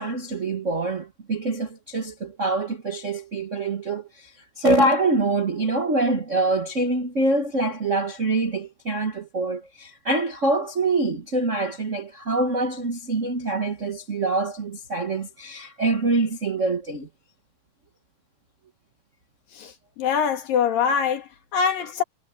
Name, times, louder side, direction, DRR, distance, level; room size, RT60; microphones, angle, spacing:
voice 1, 0.0-17.1, right 2 dB, 50° right, 0.9 m, -25 dB
voice 2, 19.5-22.0, left 7 dB, 85° left, 3.9 m, -24 dB
omnidirectional pair, 3.9 m